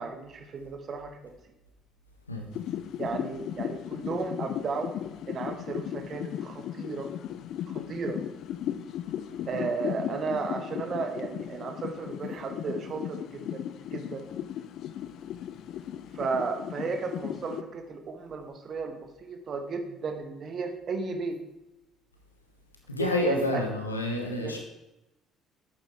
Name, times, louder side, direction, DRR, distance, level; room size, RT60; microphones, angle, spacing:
voice 1, 0.0-1.3 3.0-4.9 5.3-7.1 7.7-8.2 9.5-14.2 16.1-21.4 23.0-23.6 24.4-24.6, right 4 dB, 45° right, 5 dB, 1.6 m, -34 dB
sound 1, 2.5-17.6, left 10 dB, 55° left, 0.6 m, -36 dB
voice 2, 22.9-24.6, left 2 dB, 90° left, 2 dB, 1.3 m, -28 dB
10.5 x 8.8 x 3.6 m, 0.96 s
figure-of-eight pair, 50°, 0 cm